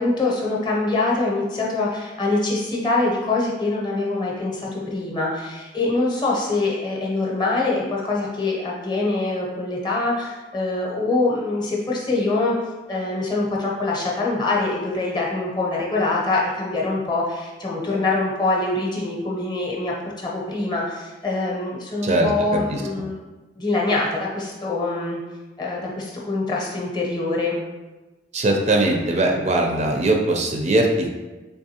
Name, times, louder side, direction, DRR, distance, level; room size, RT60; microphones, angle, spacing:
voice 1, 0.0-12.5 12.9-23.2 23.5-25.2 25.6-27.6, left 2 dB, 25° left, -3 dB, 0.7 m, -24 dB
voice 2, 28.3-31.2, right 2 dB, 40° right, 1 dB, 0.4 m, -20 dB
3.4 x 3.4 x 2.8 m, 1.2 s
head